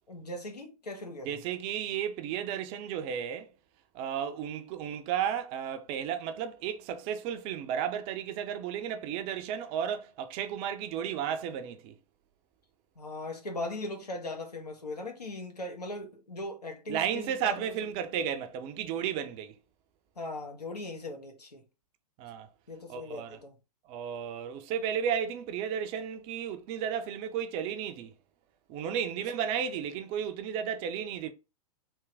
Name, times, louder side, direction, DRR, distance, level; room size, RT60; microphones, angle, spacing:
voice 1, 0.1-1.4 13.0-17.7 20.2-21.6 22.7-23.5 29.2-29.3, left 2 dB, 80° left, 1.2 m, -39 dB
voice 2, 1.2-3.5 3.9-11.9 16.9-19.5 22.2-22.5 22.9-23.4 23.9-28.1 28.7-31.3, right 8 dB, 30° right, 0.5 m, -33 dB
3.5 x 3.0 x 3.3 m
figure-of-eight pair, 105°, 20 cm